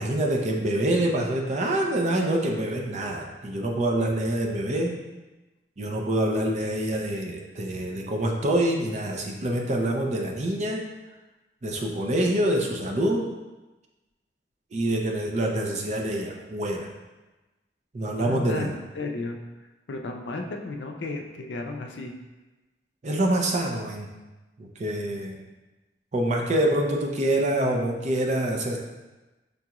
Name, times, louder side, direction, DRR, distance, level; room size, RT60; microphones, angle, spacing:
voice 1, 0.0-5.0 5.8-10.8 11.6-13.3 14.7-16.9 17.9-18.7 23.0-24.1 24.6-25.4 26.1-28.8, right 1 dB, 40° right, 1 dB, 0.5 m, -26 dB
voice 2, 18.0-19.4 19.9-22.1, left 2 dB, 75° left, 3 dB, 0.4 m, -34 dB
5.3 x 2.4 x 2.9 m, 1.1 s
head